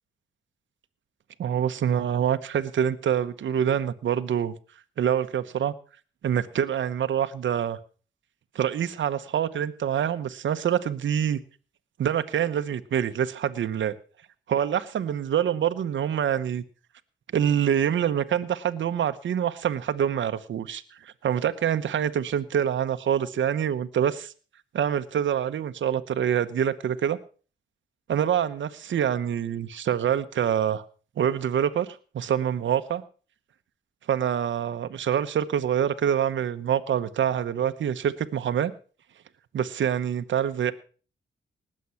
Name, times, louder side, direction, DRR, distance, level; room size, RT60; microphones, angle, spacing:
voice 1, 1.4-4.5 5.0-5.7 6.2-7.8 8.5-11.4 12.0-13.9 14.5-16.6 17.3-24.3 24.7-27.2 28.1-30.8 31.2-31.9 32.1-33.0 34.1-38.7 39.5-40.7, right 9 dB, 70° right, 9 dB, 1.0 m, -26 dB
19.0 x 7.6 x 5.7 m, 0.40 s
cardioid pair, 75°, 20 cm